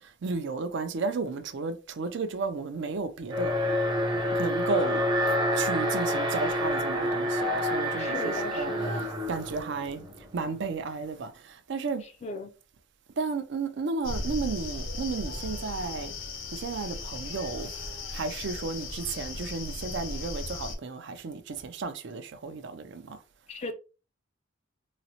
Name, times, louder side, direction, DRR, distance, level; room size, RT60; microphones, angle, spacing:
voice 1, 0.2-3.5 4.4-5.0 5.6-8.7 9.3-10.0 10.3-11.3 11.7-12.0 13.2-16.1 16.5-17.7 18.1-23.2, right 4 dB, 60° right, 0.4 m, -33 dB
Alarm, 3.3-10.4, equal, 20° right, 0.7 m, -28 dB
voice 2, 7.9-9.1 12.0-12.5 23.5-23.7, left 2 dB, 35° left, 0.3 m, -37 dB
sound 1, 14.0-20.8, left 3 dB, 75° left, 0.6 m, -36 dB
3.9 x 2.0 x 2.8 m
head